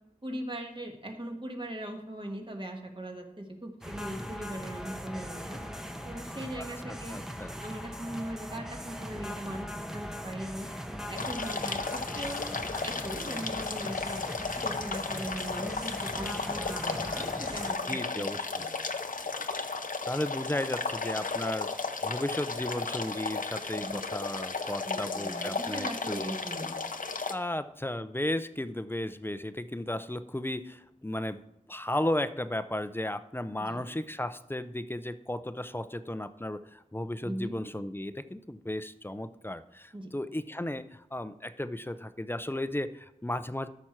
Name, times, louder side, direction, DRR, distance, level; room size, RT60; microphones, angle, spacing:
voice 1, 0.2-5.6 6.0-7.2 7.6-10.7 11.1-12.5 12.8-14.2 14.6-18.3 18.6-18.7 23.7-24.0 24.8-26.7 33.6-33.8 37.2-37.5 39.9-40.1, right 1 dB, 35° right, 2 dB, 1.6 m, -39 dB
sound 1, 3.8-17.7, equal, 5° right, 0.9 m, -40 dB
voice 2, 6.9-7.5 17.9-18.6 20.1-21.8 22.0-26.3 27.3-31.4 31.7-43.7, left 1 dB, 15° left, 12 dB, 0.5 m, -34 dB
sound 2, 11.2-27.3, left 4 dB, 80° left, 0.7 m, -34 dB
13.0 x 6.0 x 4.5 m, 0.82 s
wide cardioid pair, 55°, 14 cm